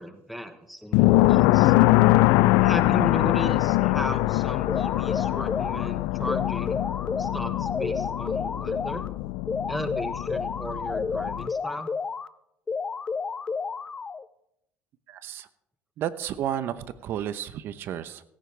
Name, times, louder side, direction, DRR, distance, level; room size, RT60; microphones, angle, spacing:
voice 1, 0.0-1.7 2.6-6.8 7.2-9.0 9.7-11.9, equal, ahead, 8 dB, 1.1 m, -36 dB
sound 1, 0.9-11.5, left 18 dB, 80° left, 0.4 m, -23 dB
sound 2, 4.7-5.9 6.3-9.1 9.5-12.3 12.7-14.3, left 5 dB, 20° left, 0.5 m, -31 dB
voice 2, 15.1-15.5 16.0-18.2, right 10 dB, 55° right, 13 dB, 0.9 m, -32 dB
16.5 x 14.5 x 3.4 m, 0.80 s
cardioid pair, 125°, 5 cm